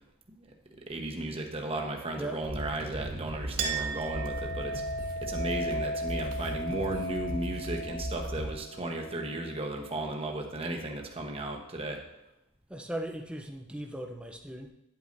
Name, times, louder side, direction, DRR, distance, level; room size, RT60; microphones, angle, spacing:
voice 1, 0.9-4.8 5.2-12.0, right 1 dB, 25° right, 1 dB, 1.0 m, -35 dB
sound 1, 2.4-8.5, right 1 dB, 40° right, 1.5 m, -38 dB
Chink clink, 3.6-10.6, right 2 dB, 85° right, 0.8 m, -37 dB
voice 2, 12.7-14.7, right 1 dB, 5° right, 3 dB, 0.5 m, -38 dB
9.7 x 8.4 x 2.6 m, 0.87 s
head